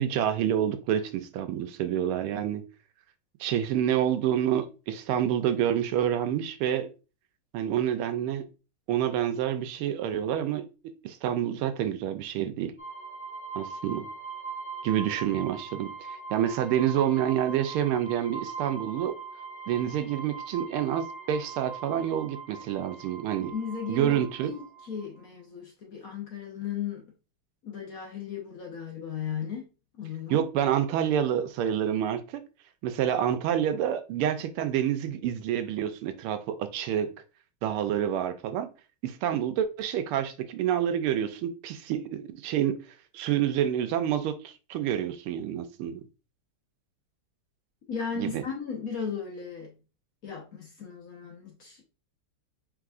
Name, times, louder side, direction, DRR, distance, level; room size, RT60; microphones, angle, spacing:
voice 1, 0.0-2.6 3.4-6.9 7.5-8.4 8.9-10.7 11.0-12.7 13.5-14.1 14.8-19.2 19.7-23.5 23.9-24.5 30.3-32.4 32.8-37.1 37.6-38.7 39.0-42.8 43.1-46.0 48.2-48.4, right 10 dB, 85° right, 1.5 m, -28 dB
sound 1, 12.8-25.2, right 5 dB, 20° left, 0.4 m, -41 dB
voice 2, 23.4-27.1 27.6-29.7 30.0-30.4 47.9-49.8 50.2-51.9, left 6 dB, 55° left, 1.1 m, -36 dB
4.8 x 3.9 x 2.4 m
omnidirectional pair, 2.4 m